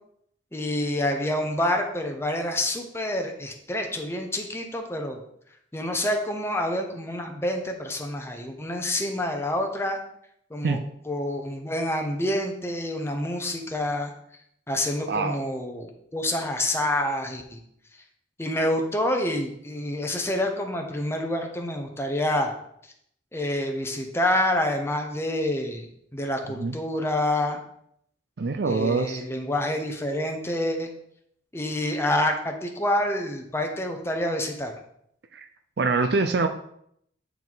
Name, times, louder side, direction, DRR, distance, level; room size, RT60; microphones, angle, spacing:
voice 1, 0.5-5.2 5.7-10.0 10.5-10.8 11.1-14.1 14.7-17.6 18.4-22.6 23.3-27.6 28.6-30.9 31.5-34.7, left 1 dB, 15° left, 3 dB, 0.9 m, -27 dB
voice 2, 15.1-15.4 26.5-26.7 28.4-29.2 35.3-35.5 35.8-36.5, right 3 dB, 60° right, 7 dB, 0.5 m, -24 dB
9.2 x 4.6 x 4.0 m, 0.71 s
head